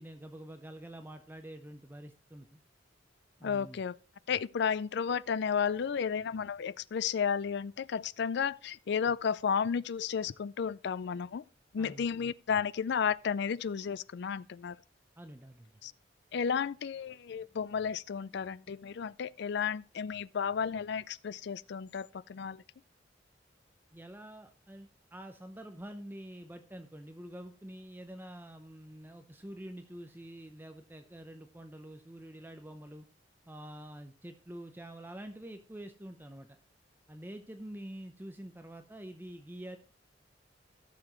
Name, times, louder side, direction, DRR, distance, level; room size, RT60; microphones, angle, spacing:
voice 1, 0.0-2.6 3.4-3.8 11.8-12.0 15.2-15.7 23.9-33.1 33.5-36.6 37.1-39.8, right 1 dB, 10° right, 0.7 m, -47 dB
voice 2, 3.4-4.0 4.3-11.4 11.7-14.8 15.8-15.9 16.3-22.6, left 7 dB, 65° left, 0.4 m, -33 dB
15.5 x 6.9 x 3.1 m
head